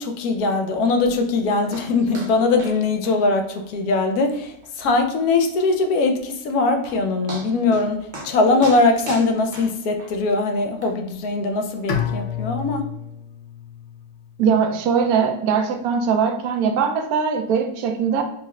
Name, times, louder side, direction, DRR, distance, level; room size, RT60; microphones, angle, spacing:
voice 1, 0.0-8.0 8.2-12.9, left 3 dB, 85° left, 6 dB, 1.1 m, -21 dB
sound 1, 1.7-1.9 2.1-2.3 2.6-2.8 3.0-3.1 3.6-3.7 4.1-4.2 4.6-4.7 6.4-6.5 6.9-7.0 7.3-7.9 8.1-8.3 8.6-10.1 10.8-10.9, right 2 dB, 40° right, 0.8 m, -36 dB
Bowed string instrument, 11.9-14.9, left 8 dB, 65° left, 0.8 m, -30 dB
voice 2, 14.4-18.2, right 6 dB, 80° right, 5 dB, 1.0 m, -21 dB
4.1 x 2.1 x 3.5 m, 0.78 s
omnidirectional pair, 1.6 m